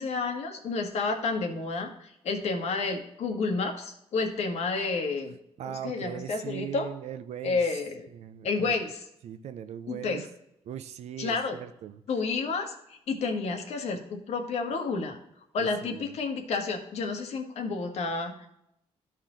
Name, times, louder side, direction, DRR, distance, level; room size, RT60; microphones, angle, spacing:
voice 1, 0.0-5.4 5.6-6.9 7.4-8.1 8.4-9.0 9.9-10.3 11.2-11.6 12.1-15.2 15.5-18.5, left 4 dB, 80° left, 4 dB, 1.5 m, -30 dB
voice 2, 5.6-7.6 8.1-8.7 9.2-10.3 10.7-12.0 15.6-16.2, right 10 dB, 80° right, 11 dB, 0.7 m, -39 dB
13.0 x 4.4 x 3.8 m, 0.78 s
cardioid pair, 110°, 11 cm